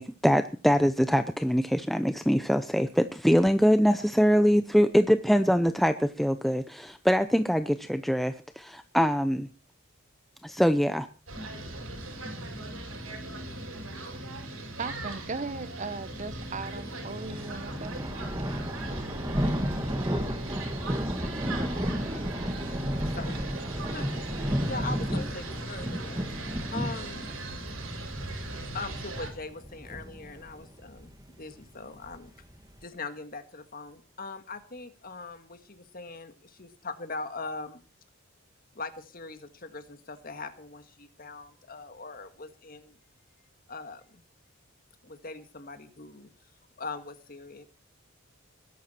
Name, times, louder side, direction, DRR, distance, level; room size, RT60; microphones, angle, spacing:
voice 1, 0.0-9.5 10.4-11.1, equal, ahead, 9 dB, 0.6 m, -23 dB
sound 1, 11.3-29.3, right 2 dB, 85° right, 6.6 m, -39 dB
voice 2, 14.8-18.0, right 4 dB, 35° right, 15 dB, 0.8 m, -37 dB
sound 2, 16.9-32.8, equal, 20° right, 1.8 m, -33 dB
voice 3, 23.8-24.1 24.4-26.4 26.7-27.2 28.4-32.3 32.8-37.8 38.7-43.0 43.7-44.2 45.0-46.5 46.8-47.6, left 3 dB, 45° left, 8 dB, 1.9 m, -41 dB
21.0 x 11.0 x 4.5 m, 0.38 s
head